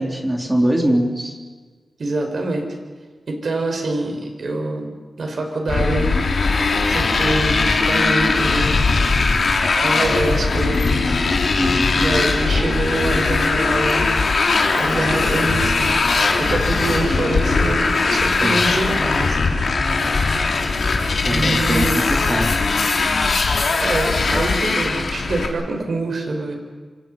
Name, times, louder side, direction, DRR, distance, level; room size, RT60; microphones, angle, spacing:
voice 1, 0.0-1.3 11.6-11.9 18.4-18.6 21.2-22.5, right 1 dB, 15° right, 0 dB, 3.8 m, -22 dB
voice 2, 2.0-2.6 3.3-4.9 5.2-6.1 6.9-9.1 9.8-11.2 11.9-14.3 14.7-16.0 16.4-19.6 21.3-22.1 23.8-26.5, right 2 dB, 65° right, 3 dB, 5.8 m, -25 dB
Motorcycle, 5.7-25.5, left 3 dB, 65° left, 3.3 m, -19 dB
27.5 x 26.5 x 5.7 m, 1.4 s
wide cardioid pair, 95°, 0 cm